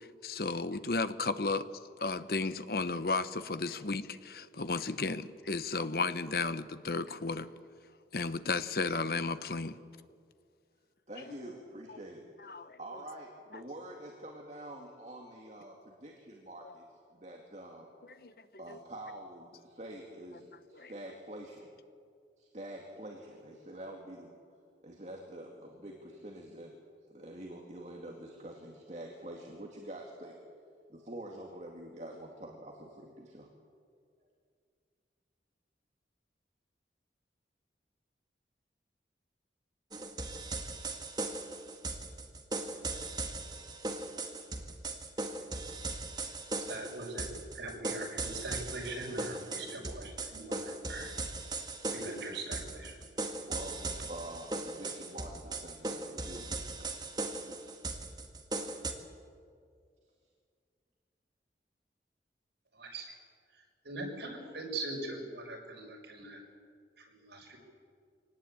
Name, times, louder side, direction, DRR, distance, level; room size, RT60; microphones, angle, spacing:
voice 1, 0.2-1.7 2.0-7.5 8.1-9.8 11.2-11.3 12.5-12.8 18.2-18.3 18.7-18.8 20.7-20.9, left 3 dB, 55° left, 13 dB, 0.9 m, -33 dB
voice 2, 11.1-16.8 17.1-17.9 18.6-21.7 22.4-24.3 24.8-26.7 27.1-30.3 30.9-33.5 53.2-57.1 57.5-57.8, right 1 dB, 40° right, 0 dB, 2.3 m, -46 dB
sound 1, 39.9-58.9, right 2 dB, 25° right, 1.7 m, -38 dB
voice 3, 46.7-47.3 47.5-51.1 51.9-53.0 62.7-63.1 63.5-66.4 67.0-67.6, right 2 dB, 80° right, 0 dB, 6.1 m, -41 dB
24.5 x 19.0 x 8.9 m, 2.2 s
head